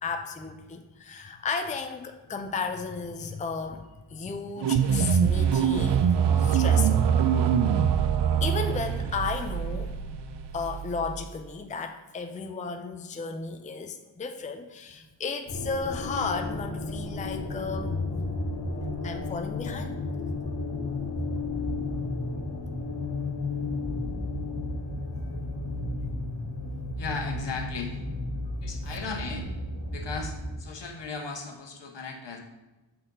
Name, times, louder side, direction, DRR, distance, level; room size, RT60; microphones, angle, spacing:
voice 1, 0.0-7.1 8.4-9.9 10.5-18.0 19.0-20.0, left 4 dB, 20° left, 6 dB, 0.4 m, -34 dB
sound 1, 4.6-11.2, right 8 dB, 70° right, 0.5 m, -24 dB
sound 2, 15.5-30.6, left 2 dB, 50° left, 1.7 m, -33 dB
voice 2, 27.0-28.0 28.6-29.5 29.9-32.4, left 4 dB, 70° left, 3 dB, 1.1 m, -36 dB
7.8 x 4.2 x 3.8 m, 1.1 s
wide cardioid pair, 80°, 45 cm